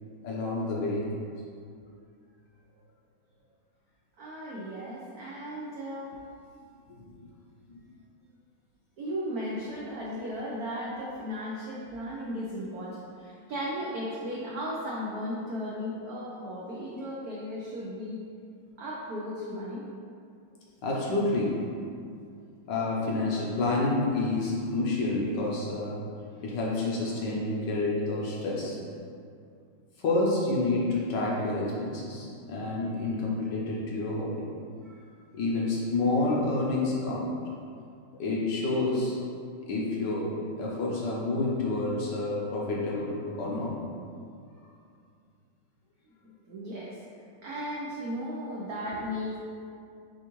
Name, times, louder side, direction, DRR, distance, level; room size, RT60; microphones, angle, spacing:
voice 1, 0.2-1.0 6.9-7.0 7.7-7.8 20.8-21.5 22.7-26.0 26.4-28.8 30.0-34.5 35.3-37.3 38.2-39.2 39.7-40.2 40.6-43.7, left 2 dB, 65° left, -4 dB, 1.2 m, -29 dB
voice 2, 4.2-6.2 9.0-18.2 18.8-19.9 34.8-35.0 35.3-35.4 46.2-47.0 47.4-49.4, equal, 90° right, -5 dB, 0.8 m, -36 dB
7.0 x 2.5 x 3.0 m, 2.4 s
omnidirectional pair, 2.3 m